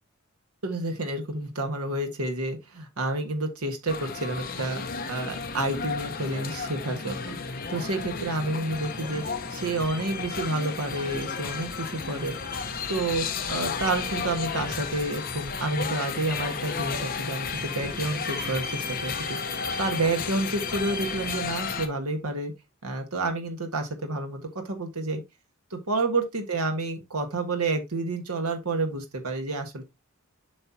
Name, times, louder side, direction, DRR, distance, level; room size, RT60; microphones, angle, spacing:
voice 1, 0.6-7.4 7.7-9.2 9.5-12.3 12.9-19.4 19.8-22.5 22.8-25.2 25.7-29.8, right 2 dB, 80° right, 1.5 m, -29 dB
sound 1, 3.9-21.9, left 5 dB, 40° left, 1.0 m, -33 dB
7.9 x 5.5 x 2.8 m
head